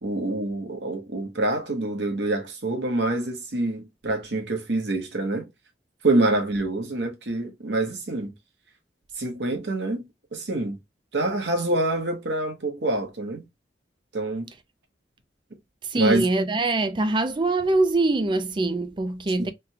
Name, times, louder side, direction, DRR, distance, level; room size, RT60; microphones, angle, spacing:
voice 1, 0.0-5.5 6.0-8.3 9.2-10.0 10.3-10.8 11.1-13.5 14.1-14.5 16.0-16.3 19.4-19.5, right 2 dB, 80° right, 1.1 m, -26 dB
voice 2, 15.8-19.5, right 2 dB, 30° right, 0.4 m, -23 dB
3.5 x 2.3 x 2.8 m
head